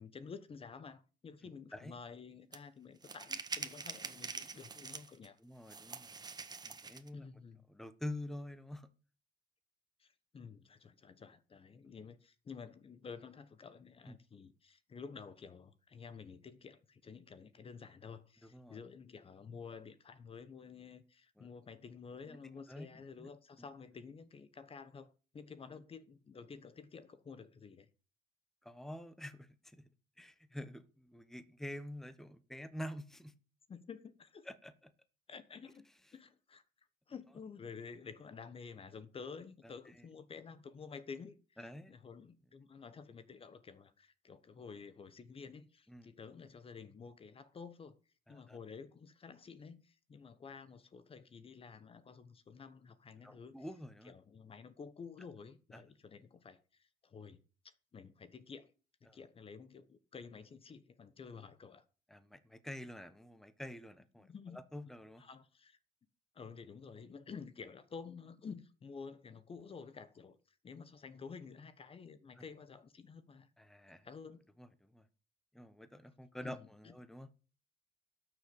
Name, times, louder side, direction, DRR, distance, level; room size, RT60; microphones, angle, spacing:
voice 1, 0.0-5.4 7.1-7.6 10.0-27.9 33.7-34.5 35.3-35.9 36.1-36.6 37.1-41.6 41.9-53.6 54.0-57.4 57.9-58.7 59.0-61.8 64.2-64.6 65.2-65.8 66.3-73.5 73.9-74.5 76.4-76.9, left 5 dB, 35° left, 1.2 m, -51 dB
sound 1, 2.5-2.6 3.0-5.3 5.7-7.1, right 4 dB, 25° right, 1.5 m, -44 dB
voice 2, 5.4-6.2 6.6-7.3 7.7-8.9 14.1-14.2 18.4-18.8 21.4-21.5 22.2-22.4 22.7-23.3 23.6-23.7 28.6-29.8 30.2-33.3 34.4-34.9 39.6-40.1 41.6-41.9 45.9-46.1 48.3-48.6 53.2-54.1 55.7-55.8 59.1-59.2 62.1-65.2 72.4-72.5 73.6-74.1 74.6-75.1 75.5-77.3, left 1 dB, ahead, 1.2 m, -47 dB
12.5 x 6.8 x 8.6 m
cardioid pair, 110°, 17 cm